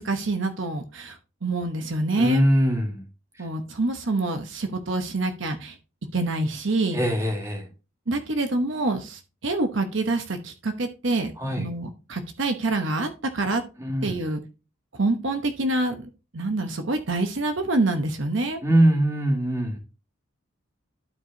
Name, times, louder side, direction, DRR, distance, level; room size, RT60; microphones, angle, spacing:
voice 1, 0.0-2.4 3.4-5.8 6.1-7.0 8.1-13.6 14.0-14.4 15.0-18.6, right 2 dB, 65° right, 7 dB, 1.0 m, -26 dB
voice 2, 2.2-3.0 3.4-3.5 6.9-7.7 11.4-11.7 13.8-14.2 18.6-19.8, right 1 dB, 15° right, 2 dB, 1.8 m, -22 dB
12.0 x 4.7 x 2.7 m, 0.30 s
head